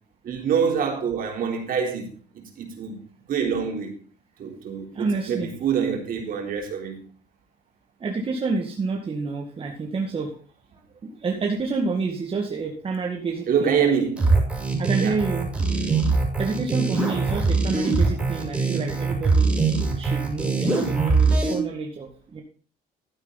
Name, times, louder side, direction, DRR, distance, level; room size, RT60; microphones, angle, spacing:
voice 1, 0.2-2.1 2.3-3.0 3.3-4.0 4.4-7.0 13.5-14.3 15.0-15.1, right 7 dB, 55° right, 3.9 m, -25 dB
voice 2, 4.9-5.5 8.0-10.4 11.0-13.9 14.8-15.5 16.4-19.5 20.0-22.4, right 4 dB, 30° right, 2.0 m, -28 dB
sound 1, 14.2-21.5, right 4 dB, 5° right, 6.1 m, -22 dB
13.0 x 9.2 x 4.1 m
cardioid pair, 110°, 17 cm